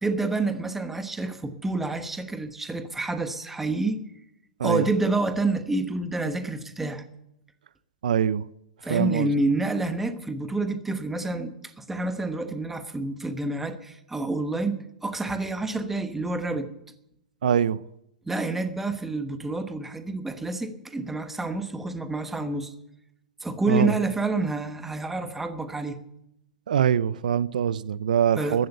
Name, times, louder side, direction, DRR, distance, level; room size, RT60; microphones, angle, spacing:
voice 1, 0.0-4.0 4.6-7.0 8.8-16.7 18.3-22.7 23.4-26.0 28.4-28.6, right 2 dB, 5° right, 1.2 m, -28 dB
voice 2, 8.0-8.5 8.9-9.3 17.4-17.8 23.7-23.9 26.7-28.7, right 8 dB, 80° right, 0.6 m, -23 dB
14.5 x 12.0 x 6.7 m
hypercardioid pair, 155°, 4 cm